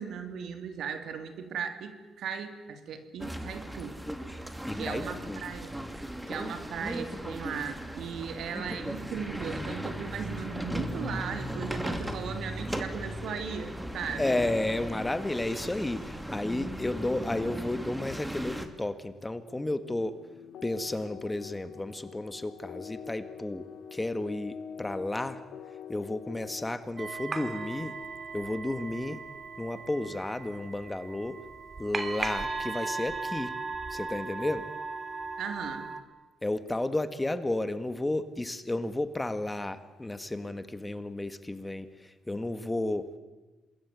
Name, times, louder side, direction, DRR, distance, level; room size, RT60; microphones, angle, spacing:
voice 1, 0.0-4.0 4.8-5.8 6.3-14.3 35.4-35.8, right 7 dB, 75° right, 8 dB, 3.1 m, -37 dB
sound 1, 3.2-18.7, equal, 5° right, 2.7 m, -37 dB
voice 2, 4.7-5.5 14.2-20.2 20.6-23.7 23.9-25.4 25.9-28.0 28.3-29.2 29.6-31.4 31.8-33.5 33.9-34.7 36.4-43.1, left 2 dB, 15° left, 11 dB, 1.7 m, -32 dB
sound 2, 19.9-26.8, left 7 dB, 85° left, 2.5 m, -45 dB
sound 3, 27.0-36.0, right 3 dB, 35° right, 2.9 m, -37 dB
27.0 x 21.0 x 9.4 m, 1.2 s
cardioid pair, 90°, 0 cm